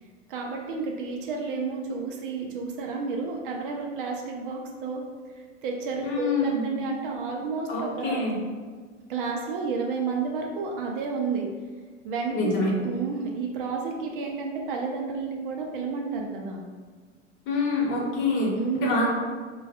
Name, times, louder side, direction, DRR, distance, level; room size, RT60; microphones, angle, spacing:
voice 1, 0.3-5.0 5.6-8.2 9.1-11.5 12.0-16.6 18.5-19.0, right 4 dB, 50° right, 0 dB, 0.6 m, -31 dB
voice 2, 6.0-6.6 7.7-8.4 12.3-12.7 17.5-19.1, left 2 dB, 35° left, -3 dB, 1.0 m, -26 dB
3.1 x 2.3 x 4.0 m, 1.5 s
figure-of-eight pair, 85°, 36 cm